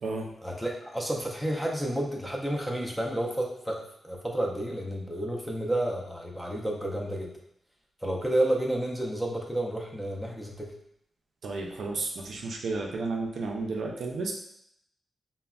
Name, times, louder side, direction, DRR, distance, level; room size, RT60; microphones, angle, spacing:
voice 1, 0.4-7.3 8.0-10.7, right 1 dB, ahead, -1 dB, 0.4 m, -30 dB
voice 2, 11.4-14.3, right 3 dB, 70° right, 0 dB, 0.4 m, -32 dB
3.3 x 2.0 x 2.3 m, 0.75 s
wide cardioid pair, 110°, 0 cm